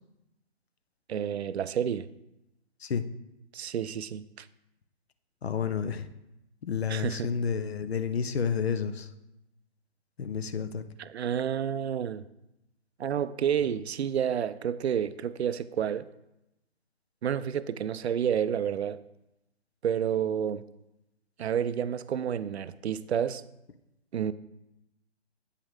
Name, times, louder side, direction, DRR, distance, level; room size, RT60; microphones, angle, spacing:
voice 1, 1.1-2.1 3.5-4.5 6.9-7.3 11.0-12.3 13.0-16.1 17.2-19.0 19.8-20.6 21.4-23.4 24.1-24.3, right 8 dB, 75° right, 0.5 m, -30 dB
voice 2, 5.4-6.1 6.6-9.1 10.2-10.8, left 6 dB, 70° left, 0.7 m, -30 dB
8.3 x 5.5 x 3.5 m
figure-of-eight pair, 145°, 33 cm